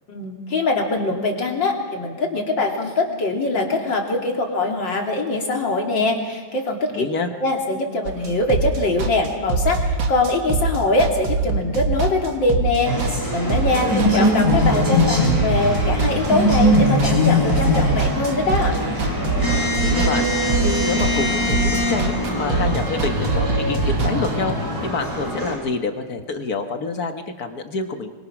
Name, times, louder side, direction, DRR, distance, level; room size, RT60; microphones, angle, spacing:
voice 1, 0.1-7.1 7.4-18.7, left 2 dB, 75° left, 1 dB, 3.6 m, -22 dB
voice 2, 7.0-7.3 13.8-14.3 19.8-20.3 20.6-24.6 24.8-28.1, left 4 dB, 55° left, 6 dB, 1.8 m, -27 dB
sound 1, 8.1-24.5, right 3 dB, 85° right, 2.5 m, -24 dB
sound 2, 12.8-25.5, left 1 dB, 30° right, 6.4 m, -22 dB
26.5 x 23.5 x 6.0 m, 1.4 s
omnidirectional pair, 2.0 m